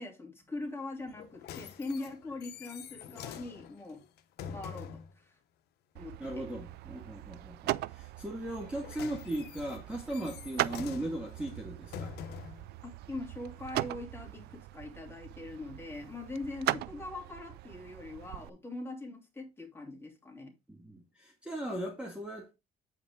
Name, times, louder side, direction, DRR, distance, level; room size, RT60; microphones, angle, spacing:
voice 1, 0.0-4.0 4.5-5.4 5.9-6.5 12.8-20.5, left 2 dB, 15° left, 2.9 m, -42 dB
sound 1, 1.1-5.1 8.5-12.7 13.4-13.5, left 8 dB, 75° left, 1.0 m, -46 dB
sound 2, 6.0-18.5, right 17 dB, 75° right, 0.4 m, -40 dB
voice 2, 6.2-12.1 20.7-22.5, right 1 dB, 5° right, 1.8 m, -38 dB
8.7 x 5.0 x 3.7 m
cardioid pair, 110°, 17 cm